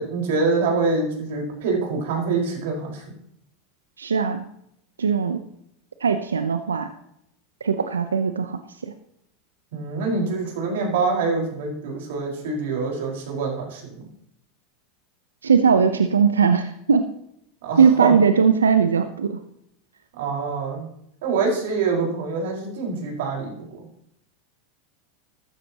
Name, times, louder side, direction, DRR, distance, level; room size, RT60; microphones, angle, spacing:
voice 1, 0.0-3.0 9.7-14.0 17.6-18.1 20.2-20.8 21.2-23.8, right 4 dB, 70° right, 0 dB, 5.1 m, -25 dB
voice 2, 4.0-4.4 5.0-5.4 6.0-6.9 7.6-8.9 15.4-17.0 17.8-19.4, right 6 dB, 90° right, 9 dB, 0.8 m, -19 dB
15.5 x 13.0 x 3.0 m, 0.74 s
hypercardioid pair, 90°, 0 cm